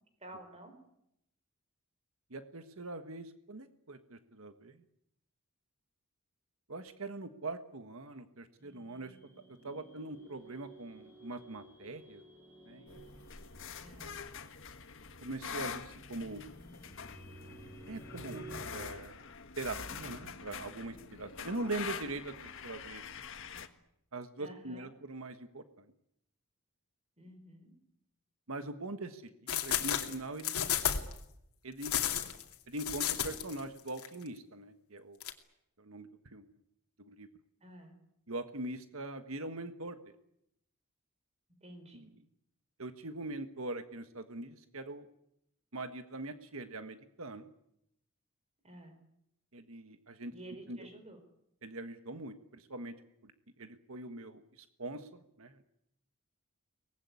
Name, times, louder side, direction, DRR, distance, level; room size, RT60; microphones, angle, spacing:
voice 1, 0.2-0.8 13.8-14.2 24.4-24.9 27.2-27.8 37.6-38.0 41.6-42.1 48.6-49.0 50.3-51.2, right 1 dB, 30° right, 6 dB, 4.8 m, -51 dB
voice 2, 2.3-4.8 6.7-9.2 9.6-12.2 12.7-13.0 15.2-16.5 17.9-19.2 19.6-23.0 24.1-25.9 28.5-30.6 31.6-31.9 32.7-35.2 35.8-36.5 37.0-37.3 38.3-40.1 41.9-42.1 42.8-45.1 45.7-47.5 49.5-50.3 50.7-50.9 51.6-52.9 53.2-53.3 53.6-55.6, right 2 dB, 70° right, 9 dB, 1.5 m, -42 dB
sound 1, 8.6-18.7, right 2 dB, 10° left, 7.5 m, -54 dB
sound 2, 12.9-23.7, left 6 dB, 60° left, 1.7 m, -45 dB
sound 3, 29.5-31.2 31.8-33.6 33.9-34.1 35.2-35.3, left 9 dB, 85° left, 2.7 m, -32 dB
24.0 x 20.0 x 9.7 m, 0.79 s
head